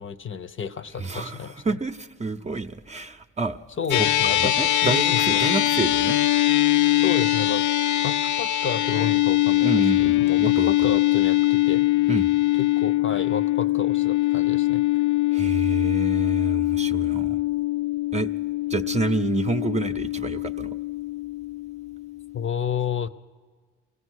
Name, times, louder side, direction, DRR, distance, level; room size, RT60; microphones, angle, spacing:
voice 1, 0.0-1.6 3.8-5.4 6.9-7.7 8.0-9.7 10.0-11.9 12.6-14.8 22.3-23.1, left 7 dB, 40° left, 0.7 m, -31 dB
voice 2, 1.0-3.6 3.9-6.8 9.6-11.0 12.1-12.3 15.3-17.4 18.1-18.3 18.7-20.8, right 3 dB, 20° right, 0.7 m, -29 dB
sound 1, 3.9-22.5, left 15 dB, 80° left, 0.5 m, -22 dB
24.5 x 16.5 x 6.4 m
cardioid pair, 90°, 30 cm